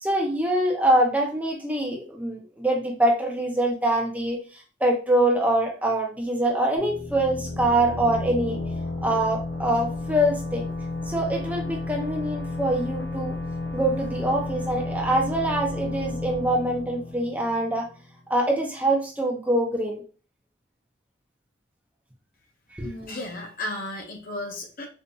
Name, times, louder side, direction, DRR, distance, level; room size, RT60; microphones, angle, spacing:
voice 1, 0.0-8.6 9.0-10.7 11.1-13.4 13.7-17.9 18.3-20.0 22.7-22.9, right 1 dB, 10° right, 0 dB, 0.6 m, -24 dB
sound 1, 6.8-18.3, left 2 dB, 70° left, 1.0 m, -32 dB
voice 2, 22.8-24.9, left 1 dB, 50° left, 2 dB, 0.7 m, -34 dB
4.4 x 2.5 x 2.7 m, 0.37 s
head